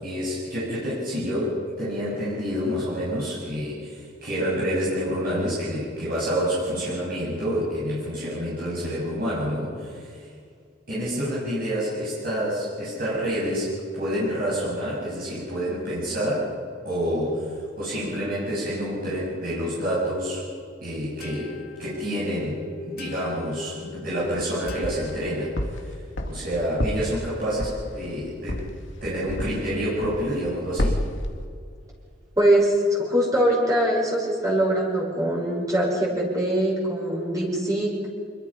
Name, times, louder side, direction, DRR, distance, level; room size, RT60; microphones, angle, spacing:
voice 1, 0.0-10.3 10.9-16.5 16.9-20.5 20.8-25.5 26.3-28.7 29.0-31.0, equal, 50° right, -7 dB, 6.9 m, -28 dB
sound 1, 21.2-26.0, left 3 dB, 50° left, 2.4 m, -40 dB
sound 2, 24.1-25.2 25.6-29.7 30.0-30.5 30.8-31.3, left 1 dB, 75° left, 2.5 m, -29 dB
voice 2, 32.4-37.9, right 1 dB, 20° right, -4 dB, 5.8 m, -22 dB
26.5 x 22.5 x 5.6 m, 2.3 s
head